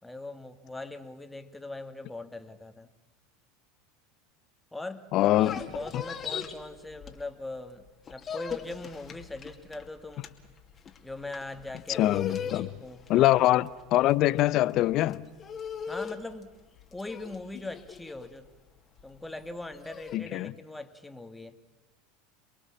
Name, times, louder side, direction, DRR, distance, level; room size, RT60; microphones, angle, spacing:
voice 1, 0.0-2.9 4.7-5.0 5.4-5.5 5.7-10.3 11.0-13.3 15.9-16.6 16.9-18.5 19.0-21.6, left 2 dB, 10° left, 2.1 m, -41 dB
voice 2, 5.1-5.6 12.0-12.7 13.1-15.3 20.1-20.5, left 15 dB, 50° left, 0.8 m, -23 dB
sound 1, 5.4-7.6 7.9-20.2, left 7 dB, 30° left, 2.4 m, -40 dB
28.0 x 22.0 x 7.3 m
hypercardioid pair, 90°, 0 cm